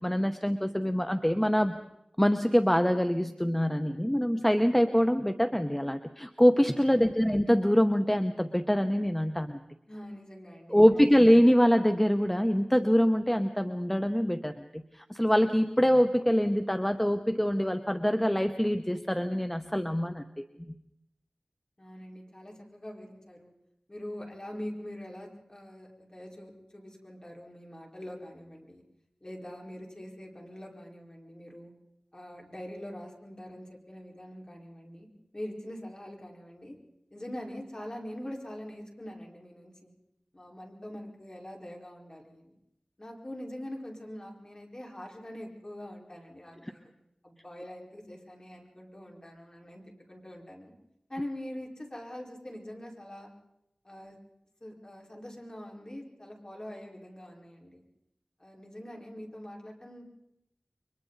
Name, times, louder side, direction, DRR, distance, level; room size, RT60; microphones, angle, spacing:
voice 1, 0.0-1.8 2.2-9.6 10.7-20.4 46.6-46.7, equal, 10° left, 7 dB, 1.0 m, -24 dB
voice 2, 6.9-7.4 9.9-11.4 21.8-23.5 23.9-28.8 29.2-31.7 32.1-35.1 35.3-36.8 37.1-39.9 40.3-42.6 43.0-46.9 47.2-50.7 51.1-53.3 53.8-54.2 54.6-57.8 58.4-60.0, left 1 dB, 35° left, 0 dB, 4.7 m, -43 dB
29.5 x 23.5 x 4.1 m, 0.82 s
wide cardioid pair, 50°, 2 cm